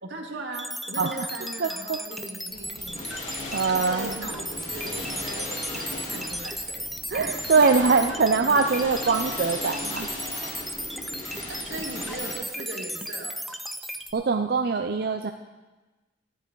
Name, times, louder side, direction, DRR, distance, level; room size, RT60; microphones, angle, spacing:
voice 1, 0.0-3.1 3.7-6.8 7.7-8.0 10.1-10.2 11.5-13.6, right 2 dB, 90° right, 1 dB, 1.9 m, -39 dB
sound 1, 0.5-14.1, equal, ahead, 0.5 m, -35 dB
voice 2, 1.6-2.0 3.5-4.1 7.1-10.1 14.1-15.3, right 4 dB, 60° right, 6 dB, 0.5 m, -23 dB
sound 2, 2.5-12.3, left 1 dB, 45° left, 2.2 m, -37 dB
12.5 x 11.5 x 3.9 m, 1.2 s
head